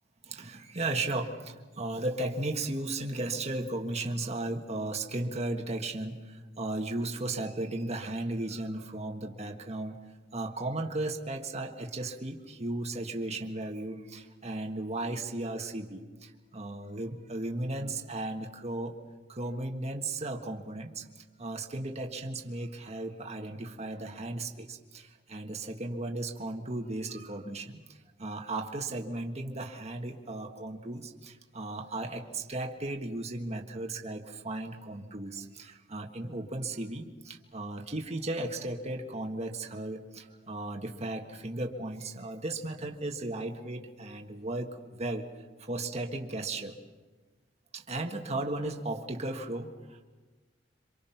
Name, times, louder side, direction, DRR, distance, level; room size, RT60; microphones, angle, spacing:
voice 1, 0.2-10.0 10.3-19.0 19.3-21.0 21.4-27.8 28.2-45.3 45.6-46.8 47.7-50.0, right 2 dB, 35° right, 3 dB, 1.6 m, -35 dB
27.5 x 25.5 x 5.8 m, 1.3 s
head